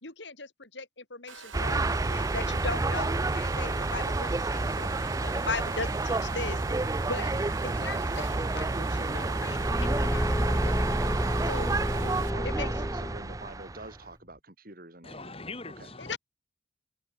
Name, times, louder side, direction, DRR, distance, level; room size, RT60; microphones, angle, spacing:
voice 1, 0.0-6.6 7.1-7.3 7.6-11.1 11.4-11.7 12.4-12.7 16.0-16.2, left 3 dB, 65° left, 3.8 m, -38 dB
Domestic sounds home sounds, 1.3-12.3, right 6 dB, 90° right, 3.2 m, -46 dB
sound 1, 1.5-14.0, right 3 dB, 15° right, 0.4 m, -30 dB
Car / Engine, 9.1-13.6, equal, 5° left, 2.4 m, -31 dB
voice 2, 11.9-15.3 15.8-15.9, right 2 dB, 50° right, 6.0 m, -46 dB
voice 3, 15.0-16.2, left 3 dB, 30° left, 5.2 m, -41 dB
head